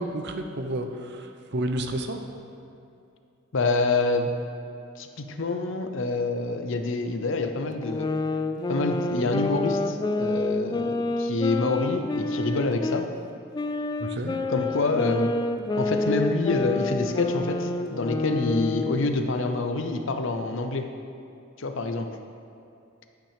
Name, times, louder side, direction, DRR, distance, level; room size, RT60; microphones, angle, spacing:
voice 1, 0.0-2.2 14.0-14.4, right 1 dB, 60° right, 5 dB, 0.7 m, -31 dB
voice 2, 3.5-4.3 5.0-8.1 8.7-13.1 14.5-15.4 15.8-20.9 21.6-22.1, left 3 dB, 65° left, 6 dB, 0.7 m, -26 dB
sound 1, 7.8-13.1 13.5-19.1, left 2 dB, 20° left, 0.3 m, -28 dB
10.0 x 5.9 x 5.0 m, 2.6 s
head